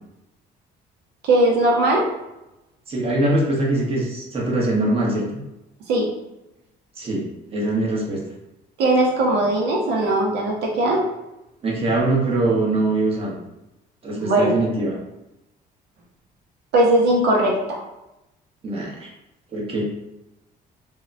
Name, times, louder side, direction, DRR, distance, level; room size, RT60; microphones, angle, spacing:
voice 1, 1.2-2.1 5.9-6.1 8.8-11.0 14.1-14.5 16.7-17.8, right 1 dB, 80° right, -2 dB, 0.6 m, -19 dB
voice 2, 2.9-5.2 7.0-7.2 7.5-8.2 11.6-13.4 14.0-15.0 18.6-19.1 19.5-19.9, right 2 dB, 35° right, -3 dB, 0.9 m, -22 dB
3.5 x 2.1 x 2.5 m, 0.93 s
cardioid pair, 110°, 17 cm